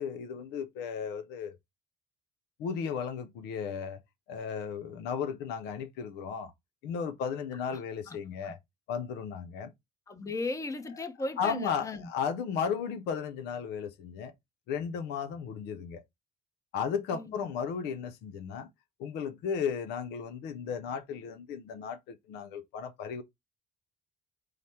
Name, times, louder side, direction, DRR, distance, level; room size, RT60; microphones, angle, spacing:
voice 1, 0.0-1.6 2.6-4.0 4.3-6.5 6.8-8.6 8.9-9.7 11.4-14.3 14.7-16.0 16.7-18.7 19.0-23.2, left 7 dB, 85° left, 0.6 m, -35 dB
voice 2, 10.1-12.1 17.1-17.5, left 3 dB, 20° left, 0.7 m, -36 dB
4.9 x 2.1 x 4.2 m
cardioid pair, 110°, 17 cm